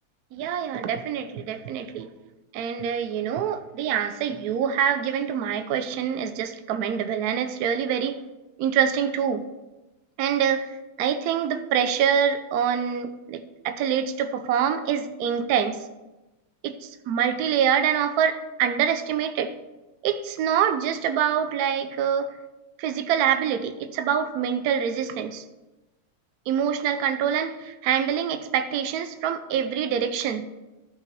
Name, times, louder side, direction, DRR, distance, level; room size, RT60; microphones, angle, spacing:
voice 1, 0.3-2.1 2.5-8.2 8.6-9.5 10.2-15.8 16.6-19.5 20.0-22.3 22.8-25.4 26.5-30.5, right 8 dB, 85° right, 9 dB, 0.8 m, -25 dB
12.5 x 5.7 x 4.5 m, 1.1 s
omnidirectional pair, 2.4 m